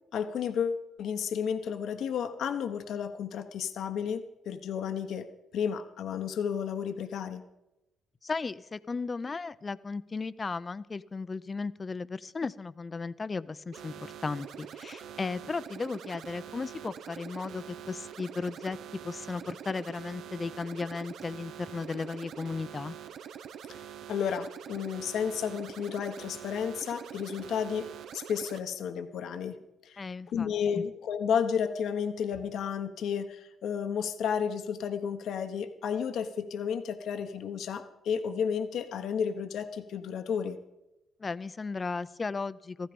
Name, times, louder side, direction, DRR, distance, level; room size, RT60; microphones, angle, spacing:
voice 1, 0.1-5.3 5.5-7.4 23.7-23.8 24.1-27.9 28.1-29.6 29.8-40.6, left 7 dB, 75° left, 8 dB, 1.1 m, -32 dB
voice 2, 8.2-18.8 19.0-22.9 30.0-30.5 30.7-30.8 41.2-42.9, left 4 dB, 30° left, 16 dB, 0.6 m, -35 dB
sound 1, 13.7-28.6, right 9 dB, 70° right, 0.9 m, -45 dB
15.0 x 14.0 x 5.2 m, 0.90 s
cardioid pair, 90°, 0 cm